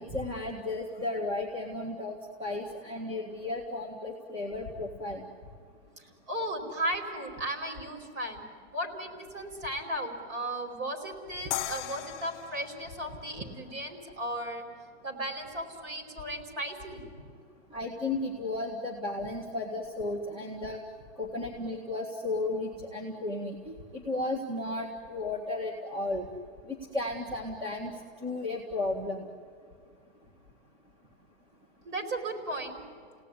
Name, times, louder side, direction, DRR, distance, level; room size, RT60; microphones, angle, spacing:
voice 1, 0.0-5.2 17.7-20.8 21.2-26.3 26.7-27.9 28.2-29.2, left 2 dB, 15° right, 0 dB, 1.8 m, -34 dB
voice 2, 6.0-8.4 8.7-14.6 15.0-17.0 17.3-17.4 31.8-32.8, right 1 dB, 40° right, 4 dB, 4.9 m, -36 dB
sound 1, 11.5-14.6, left 13 dB, 35° left, 1.2 m, -39 dB
30.0 x 18.0 x 9.9 m, 2.1 s
supercardioid pair, 155°, 36 cm